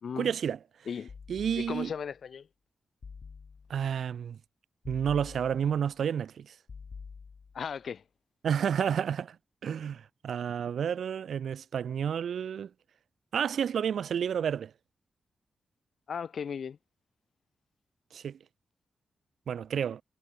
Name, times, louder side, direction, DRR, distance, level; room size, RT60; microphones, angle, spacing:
voice 1, 0.2-0.6 1.3-1.9 3.7-4.4 4.9-6.5 8.4-9.4 9.6-12.7 13.3-14.7 18.1-18.4 19.5-20.0, right 8 dB, 80° right, 0.4 m, -30 dB
sound 1, 1.1-2.1 3.0-3.9 4.8-5.9 6.7-7.8, left 5 dB, 45° left, 3.2 m, -47 dB
voice 2, 1.6-2.5 7.5-8.0 16.1-16.8, left 7 dB, 65° left, 1.1 m, -36 dB
wide cardioid pair, 115°, 0 cm